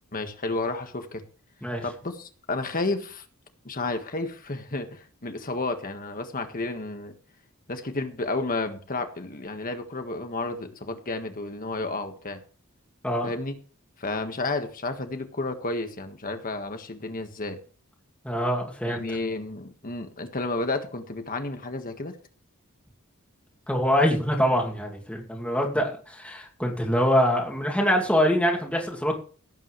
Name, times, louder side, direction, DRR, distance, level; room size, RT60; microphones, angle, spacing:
voice 1, 0.1-1.2 1.8-3.2 3.6-7.1 7.7-12.4 13.2-13.5 14.0-17.6 18.8-22.2, left 2 dB, 40° left, 6 dB, 1.6 m, -31 dB
voice 2, 18.2-19.0 23.7-29.2, equal, 5° left, -1 dB, 2.5 m, -24 dB
17.5 x 8.8 x 3.2 m, 0.39 s
head